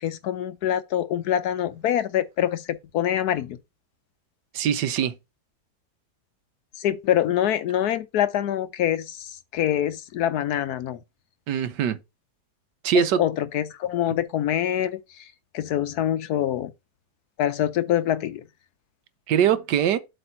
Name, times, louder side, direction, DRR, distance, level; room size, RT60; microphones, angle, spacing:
voice 1, 0.0-3.6 6.8-11.0 13.2-15.3 15.5-16.7 17.4-18.4, left 11 dB, 70° left, 1.1 m, -25 dB
voice 2, 4.5-5.1 11.5-12.0 12.8-13.2 19.3-20.0, right 9 dB, 75° right, 1.3 m, -22 dB
7.9 x 3.5 x 5.6 m
omnidirectional pair, 1.9 m